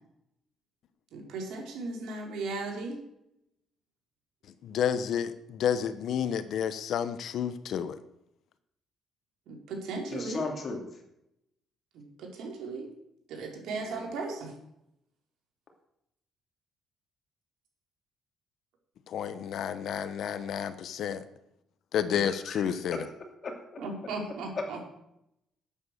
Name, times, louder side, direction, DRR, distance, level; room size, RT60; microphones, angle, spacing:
voice 1, 1.1-3.0 9.5-10.4 11.9-12.9 13.3-14.5 23.8-24.8, right 3 dB, 80° right, 1 dB, 4.1 m, -36 dB
voice 2, 4.6-8.0 19.1-21.2 21.9-23.0, left 8 dB, 65° left, 12 dB, 1.0 m, -30 dB
voice 3, 10.1-10.8 13.8-14.1 22.3-22.6 22.9-23.0 23.4-23.5 24.6-24.8, left 3 dB, 35° left, 2 dB, 2.9 m, -35 dB
12.5 x 8.9 x 6.7 m, 0.81 s
cardioid pair, 135°, 0 cm